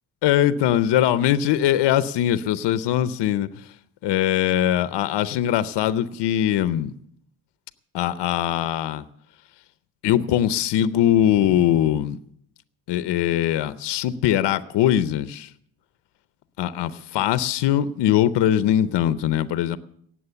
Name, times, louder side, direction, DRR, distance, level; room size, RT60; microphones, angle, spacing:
voice 1, 0.2-3.7 4.0-6.9 7.9-9.0 10.0-12.2 12.9-15.5 16.6-19.8, left 11 dB, 85° left, 14 dB, 0.7 m, -21 dB
18.0 x 7.5 x 6.8 m, 0.68 s
cardioid pair, 105°, 40 cm